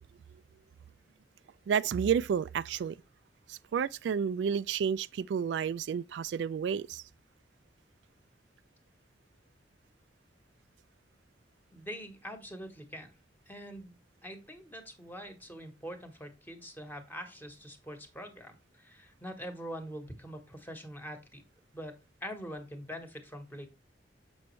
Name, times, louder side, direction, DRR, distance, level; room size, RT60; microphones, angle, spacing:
voice 1, 1.7-3.0 3.5-7.0, right 7 dB, 80° right, 0.3 m, -31 dB
voice 2, 11.7-13.2 13.5-14.0 14.2-21.4 21.7-23.7, equal, 10° left, 1.3 m, -44 dB
7.0 x 6.0 x 3.2 m
head